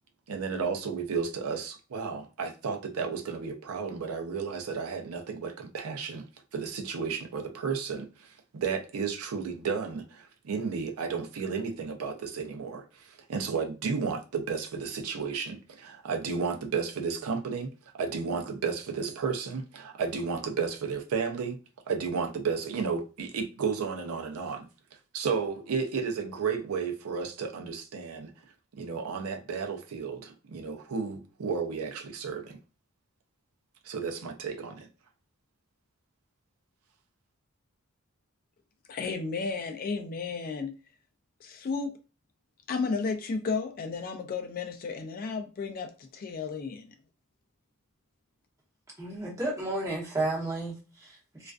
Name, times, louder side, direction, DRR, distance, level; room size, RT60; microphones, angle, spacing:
voice 1, 0.3-6.3 6.5-8.1 8.5-17.7 17.9-21.6 21.9-24.7 25.1-28.3 28.8-32.6 33.8-34.9, right 5 dB, 75° right, 0.5 m, -33 dB
voice 2, 38.9-40.7 41.4-41.9 42.7-46.9, left 4 dB, 40° left, 0.3 m, -33 dB
voice 3, 49.0-51.5, right 2 dB, 15° right, 0.9 m, -32 dB
2.4 x 2.2 x 2.3 m
head